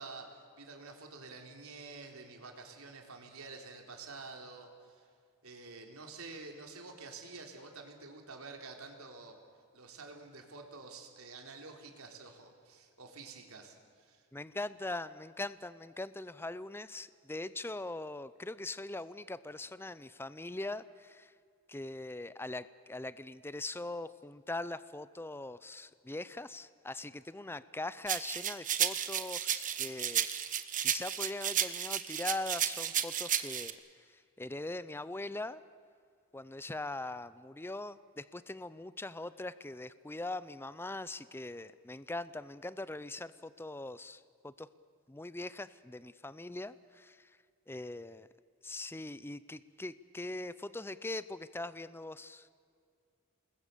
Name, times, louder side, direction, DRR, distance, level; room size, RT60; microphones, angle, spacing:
voice 1, 0.0-5.1 5.4-9.4 9.7-14.2, right 3 dB, 80° right, 3 dB, 3.6 m, -49 dB
voice 2, 14.3-21.3 21.7-33.8 34.1-35.6 36.3-44.7 45.1-47.4 47.7-48.3 48.6-52.5, left 2 dB, 10° left, 15 dB, 0.5 m, -41 dB
sound 1, 28.1-33.7, right 10 dB, 35° right, 1.1 m, -33 dB
28.0 x 21.0 x 6.9 m, 2.3 s
head